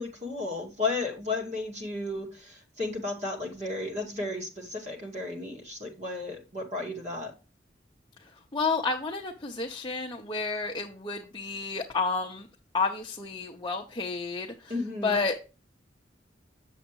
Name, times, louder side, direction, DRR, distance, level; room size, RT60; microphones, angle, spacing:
voice 1, 0.0-7.3 14.7-15.2, left 3 dB, 40° right, 1 dB, 2.1 m, -33 dB
voice 2, 8.5-12.5 12.7-14.7 15.0-15.5, left 4 dB, 25° left, -1 dB, 0.8 m, -30 dB
7.8 x 7.1 x 3.0 m, 0.31 s
head